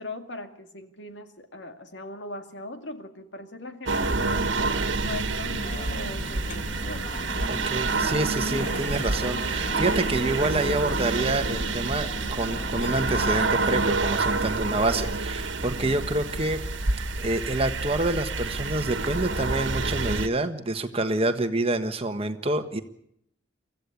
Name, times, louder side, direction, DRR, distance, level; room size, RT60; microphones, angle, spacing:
voice 1, 0.0-7.1, left 2 dB, 70° left, 6 dB, 2.3 m, -40 dB
sound 1, 3.9-20.3, right 3 dB, 85° right, 1.5 m, -28 dB
sound 2, 5.6-13.9, left 1 dB, 45° left, 1.9 m, -39 dB
voice 2, 7.5-16.6 17.2-22.8, right 2 dB, 30° right, 7 dB, 1.5 m, -27 dB
24.5 x 15.0 x 8.5 m, 0.75 s
head